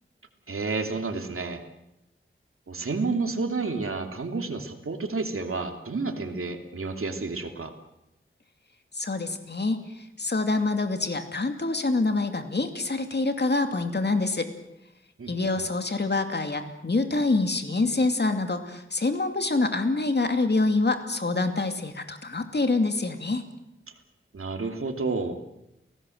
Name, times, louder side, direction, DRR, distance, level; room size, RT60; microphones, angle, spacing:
voice 1, 0.5-1.6 2.7-7.7 15.2-15.3 23.9-24.0 24.3-25.4, right 3 dB, 90° right, 5 dB, 2.8 m, -30 dB
voice 2, 8.9-14.5 15.3-23.4, left 3 dB, 55° left, 7 dB, 2.6 m, -26 dB
30.0 x 18.0 x 7.9 m, 0.89 s
wide cardioid pair, 70°, 21 cm